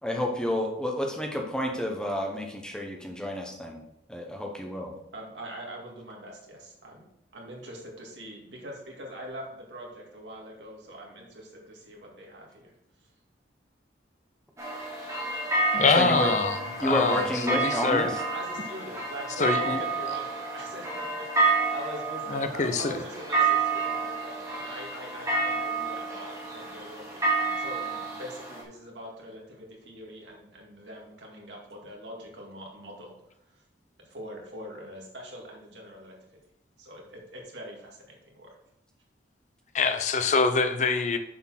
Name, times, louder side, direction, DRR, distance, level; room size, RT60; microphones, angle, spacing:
voice 1, 0.0-3.8 4.1-4.9 15.9-16.3 16.8-18.1, left 1 dB, 5° left, 1 dB, 0.9 m, -30 dB
voice 2, 5.1-7.1 7.3-12.7 13.0-13.1 18.3-33.1 33.5-33.6 34.1-36.3 36.8-38.6, equal, 80° right, -1 dB, 2.2 m, -43 dB
church bell, 14.6-28.6, right 3 dB, 15° right, 1.7 m, -29 dB
voice 3, 15.7-18.1 19.4-19.8 22.3-23.0 39.7-41.2, left 4 dB, 40° left, 8 dB, 0.6 m, -25 dB
7.2 x 4.4 x 5.9 m, 0.78 s
head